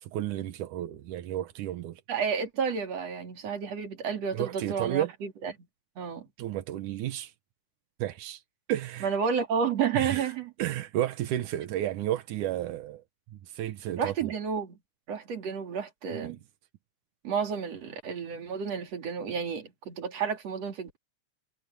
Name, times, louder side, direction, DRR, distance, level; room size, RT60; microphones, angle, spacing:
voice 1, 0.0-2.0 4.3-5.1 6.4-7.3 8.0-8.4 8.7-9.2 9.9-10.3 10.6-13.0 13.3-14.3 16.1-16.4, right 12 dB, 85° right, 2.5 m, -32 dB
voice 2, 2.1-5.5 6.0-6.3 9.0-10.5 14.0-14.8 15.1-16.4 17.2-21.0, right 6 dB, 55° right, 4.0 m, -31 dB
omnidirectional pair, 3.5 m